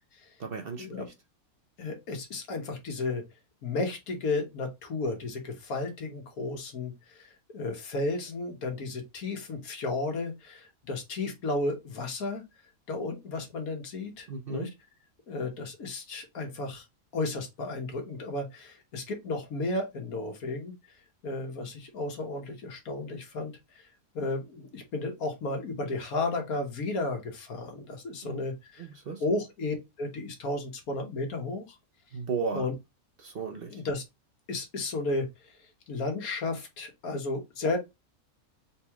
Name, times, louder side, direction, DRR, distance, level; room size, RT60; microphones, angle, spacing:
voice 1, 0.4-1.0 14.3-14.7 28.2-28.4 28.8-29.2 32.1-32.7 33.2-33.8, right 5 dB, 50° right, 0.8 m, -35 dB
voice 2, 1.8-3.2 3.6-12.4 12.9-14.7 15.3-16.8 17.1-20.7 21.2-23.8 24.1-28.9 29.2-31.8 32.5-32.7 33.7-34.0 34.5-35.5 35.9-37.8, left 2 dB, 80° left, 1.7 m, -33 dB
4.0 x 3.0 x 3.5 m
omnidirectional pair, 1.5 m